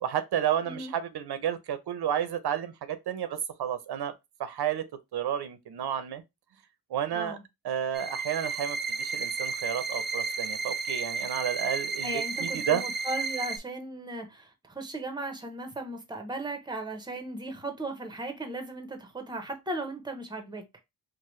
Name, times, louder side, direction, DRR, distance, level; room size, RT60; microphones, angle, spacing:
voice 1, 0.0-4.1 4.4-4.8 5.1-6.2 6.9-7.4 7.6-12.8, right 9 dB, 85° right, 0.6 m, -31 dB
voice 2, 7.1-7.4 12.0-20.7, right 2 dB, 10° right, 0.7 m, -37 dB
sound 1, 7.9-13.6, right 4 dB, 30° right, 0.3 m, -32 dB
4.6 x 2.1 x 3.1 m
wide cardioid pair, 125°, 38 cm